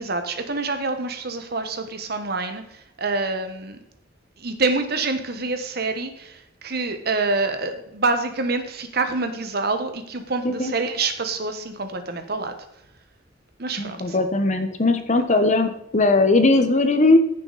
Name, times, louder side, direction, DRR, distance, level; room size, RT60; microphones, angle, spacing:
voice 1, 0.0-3.8 4.4-12.5 13.6-14.2 15.3-15.4, right 3 dB, 60° right, 8 dB, 1.3 m, -26 dB
voice 2, 13.8-17.2, left 2 dB, 40° left, 8 dB, 1.2 m, -19 dB
15.0 x 6.8 x 4.1 m, 0.80 s
head